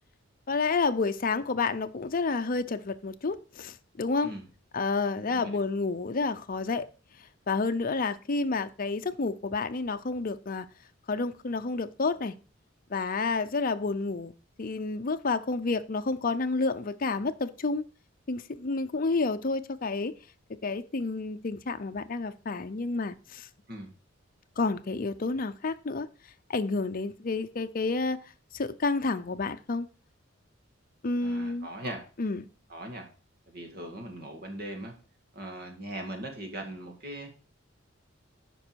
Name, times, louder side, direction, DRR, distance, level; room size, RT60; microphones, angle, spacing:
voice 1, 0.5-4.3 4.7-6.9 7.5-10.7 11.1-12.4 12.9-14.3 14.6-17.8 18.3-20.1 20.6-23.5 24.6-26.1 26.5-28.2 28.5-29.9 31.0-31.7 32.2-32.5, left 3 dB, 45° left, 9 dB, 0.6 m, -30 dB
voice 2, 5.3-5.6 23.7-23.9 31.2-32.0 32.7-33.1 33.5-34.9 35.3-37.4, right 1 dB, 50° right, 3 dB, 2.0 m, -40 dB
9.1 x 5.4 x 4.6 m, 0.37 s
head